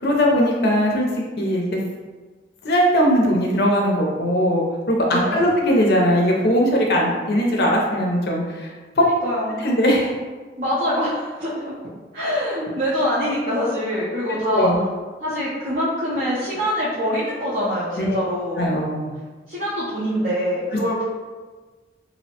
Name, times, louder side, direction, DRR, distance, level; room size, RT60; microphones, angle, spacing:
voice 1, 0.0-1.6 2.6-8.7 9.6-10.1 14.5-14.8 18.0-18.2 18.6-19.1, equal, 60° left, -1 dB, 0.5 m, -19 dB
voice 2, 5.1-5.5 9.0-9.6 10.6-11.8 12.1-14.7 15.2-18.6 19.5-21.0, equal, 50° right, -10 dB, 0.5 m, -24 dB
2.6 x 2.0 x 2.8 m, 1.3 s
head